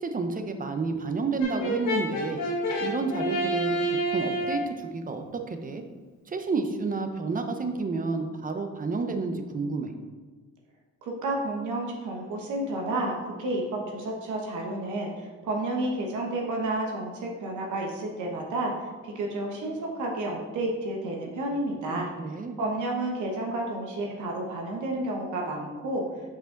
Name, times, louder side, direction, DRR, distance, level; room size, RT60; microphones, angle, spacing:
voice 1, 0.0-2.4 2.8-3.8 4.1-5.8 6.3-9.9 21.9-22.5, right 4 dB, 30° right, 6 dB, 0.7 m, -30 dB
Brass instrument, 1.4-4.7, right 1 dB, 70° left, 1.5 m, -28 dB
voice 2, 11.0-18.7 19.0-22.1 22.6-26.0, right 2 dB, 80° right, -1 dB, 1.2 m, -31 dB
5.5 x 5.0 x 3.8 m, 1.3 s
cardioid pair, 90°, 30 cm